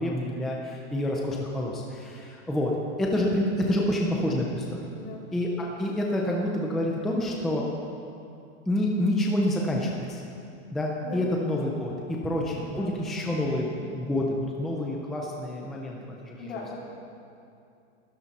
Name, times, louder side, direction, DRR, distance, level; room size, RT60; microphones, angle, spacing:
voice 1, 0.0-2.7 3.0-4.8 5.3-7.7 8.7-10.2 10.7-16.8, left 1 dB, ahead, -2 dB, 0.4 m, -28 dB
voice 2, 12.5-13.1 16.4-16.8, left 3 dB, 70° left, -3 dB, 4.3 m, -39 dB
19.5 x 13.5 x 4.2 m, 2.5 s
supercardioid pair, 165°, 36 cm